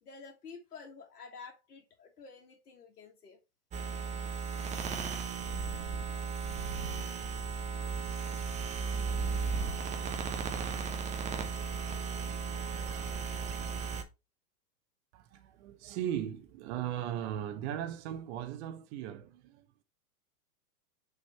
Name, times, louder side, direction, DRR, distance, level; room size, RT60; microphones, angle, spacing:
voice 1, 0.0-3.4, left 5 dB, 90° left, 1.7 m, -50 dB
sound 1, 3.7-14.0, right 5 dB, 15° right, 0.8 m, -35 dB
voice 2, 15.1-19.8, right 10 dB, 45° right, 1.2 m, -38 dB
6.6 x 4.1 x 4.4 m
hypercardioid pair, 125°, 46 cm